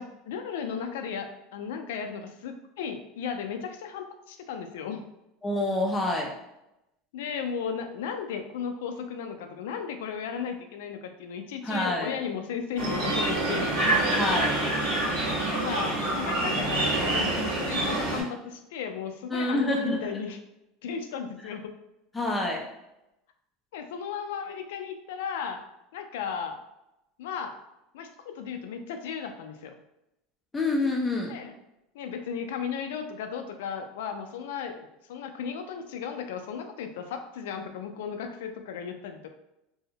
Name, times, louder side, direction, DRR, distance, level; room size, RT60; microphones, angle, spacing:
voice 1, 0.0-5.0 7.1-13.8 15.5-20.4 20.8-21.7 23.7-25.6 25.9-26.6 27.2-27.5 27.9-29.8 31.3-31.5 31.9-39.3, left 7 dB, 85° left, 6 dB, 0.3 m, -35 dB
voice 2, 5.4-6.3 11.6-12.1 14.2-14.6 19.3-20.2 22.1-22.7 30.5-31.4, left 2 dB, 10° left, -1 dB, 0.4 m, -27 dB
sound 1, 12.8-18.2, right 1 dB, 85° right, 1.4 m, -26 dB
2.6 x 2.0 x 2.7 m, 0.88 s
supercardioid pair, 140°, 0 cm